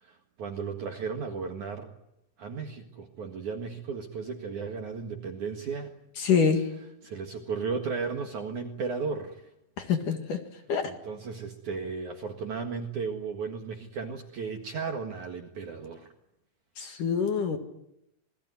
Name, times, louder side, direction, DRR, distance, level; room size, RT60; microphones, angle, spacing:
voice 1, 0.0-1.9 2.4-5.9 7.0-9.4 10.9-16.1, right 5 dB, 55° right, 4 dB, 2.3 m, -35 dB
voice 2, 6.2-6.7 9.8-10.4 10.7-10.9 16.8-17.6, left 6 dB, 55° left, 6 dB, 2.7 m, -26 dB
28.0 x 21.5 x 9.5 m, 0.84 s
omnidirectional pair, 5.8 m